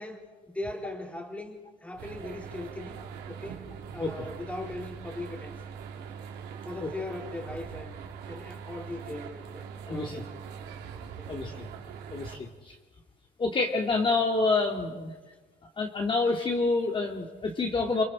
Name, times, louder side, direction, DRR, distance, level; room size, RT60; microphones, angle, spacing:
voice 1, 0.0-3.0 3.3-3.6 3.9-5.5 6.6-10.4 11.2-11.3, left 2 dB, 10° left, 0 dB, 4.1 m, -39 dB
sound 1, 2.0-12.4, right 7 dB, 80° right, 3.2 m, -42 dB
voice 2, 9.9-10.2 11.3-11.6 12.1-12.8 13.4-15.1 15.8-18.0, left 3 dB, 30° left, 0 dB, 2.5 m, -27 dB
29.5 x 23.5 x 4.3 m, 1.3 s
cardioid pair, 110°, 17 cm